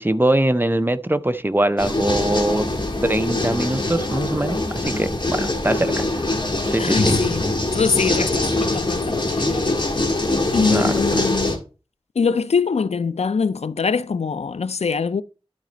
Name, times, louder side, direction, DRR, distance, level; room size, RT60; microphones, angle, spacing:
voice 1, 0.0-2.7 3.0-6.1 6.6-7.1 10.7-11.2, right 1 dB, 20° right, 0.6 m, -22 dB
sound 1, 1.8-11.6, left 2 dB, 50° left, 1.9 m, -23 dB
voice 2, 6.8-7.4 7.7-9.8 10.5-11.6 12.2-15.2, left 5 dB, 85° left, 0.4 m, -23 dB
12.0 x 4.1 x 3.9 m
wide cardioid pair, 50°, 11 cm